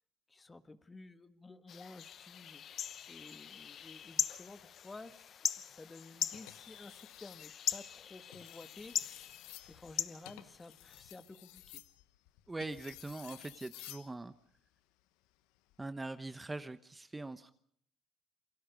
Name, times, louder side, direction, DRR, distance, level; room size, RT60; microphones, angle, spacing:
voice 1, 0.3-2.7 3.1-9.3 9.6-11.8, left 3 dB, 20° left, 10 dB, 1.6 m, -53 dB
sound 1, 1.7-11.1, left 9 dB, 55° left, 0.9 m, -41 dB
sound 2, 6.3-7.6 8.2-14.1 15.6-15.8, left 16 dB, 90° left, 1.1 m, -54 dB
voice 2, 12.5-14.3 15.8-17.5, right 2 dB, 15° right, 11 dB, 1.0 m, -42 dB
28.5 x 22.5 x 5.3 m, 0.63 s
supercardioid pair, 95°, 0 cm